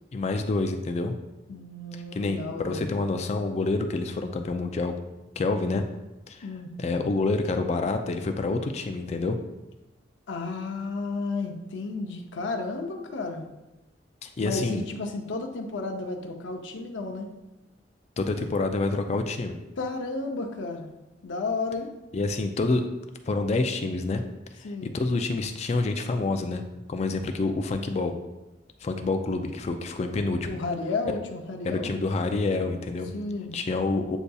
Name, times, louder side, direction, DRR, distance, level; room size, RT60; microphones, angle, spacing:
voice 1, 0.1-1.2 2.1-4.9 5.4-5.8 6.3-6.5 6.8-9.4 14.2-14.8 18.2-19.6 22.1-22.8 23.3-24.2 24.6-28.1 28.8-30.5 31.6-33.1 33.5-34.2, left 3 dB, 35° left, 6 dB, 0.3 m, -27 dB
voice 2, 1.5-2.9 6.4-6.7 10.3-13.4 14.4-17.3 19.8-20.9 21.2-21.9 24.6-24.9 30.4-32.0 33.1-33.6, left 3 dB, 85° left, 3 dB, 0.6 m, -32 dB
7.9 x 2.6 x 2.3 m, 1.0 s
head